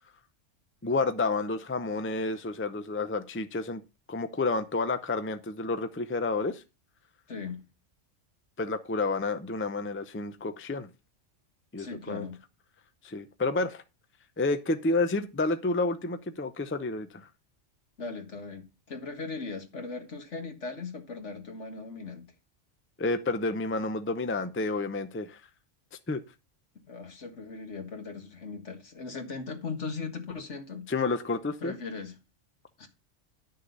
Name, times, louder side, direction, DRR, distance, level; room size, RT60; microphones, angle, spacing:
voice 1, 0.8-3.8 4.1-6.6 8.6-10.9 11.7-12.3 13.0-13.8 14.4-17.3 23.0-25.4 26.1-26.2 30.9-31.7, left 3 dB, 15° left, 0.5 m, -30 dB
voice 2, 7.3-7.6 11.8-12.4 18.0-22.3 26.9-30.9 31.6-32.2 32.8-32.9, left 4 dB, 70° left, 2.0 m, -38 dB
11.0 x 6.6 x 3.9 m
omnidirectional pair, 1.3 m